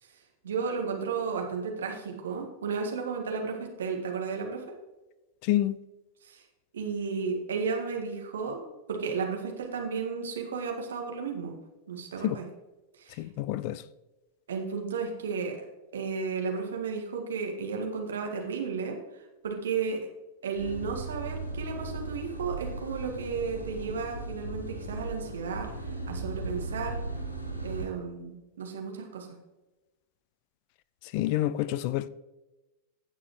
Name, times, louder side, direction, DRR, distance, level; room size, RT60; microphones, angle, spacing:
voice 1, 0.4-4.6 6.2-6.4 6.7-11.6 11.9-12.5 13.0-13.2 14.5-15.6 15.9-20.0 20.4-27.0 27.6-29.3, right 5 dB, 65° right, 1.8 m, -33 dB
voice 2, 5.4-5.8 12.2-12.4 13.2-13.8 31.1-32.1, left 14 dB, 45° left, 0.3 m, -28 dB
sound 1, 20.5-27.9, right 2 dB, 80° left, 1.8 m, -37 dB
16.5 x 6.1 x 3.1 m
figure-of-eight pair, 90°, 0 cm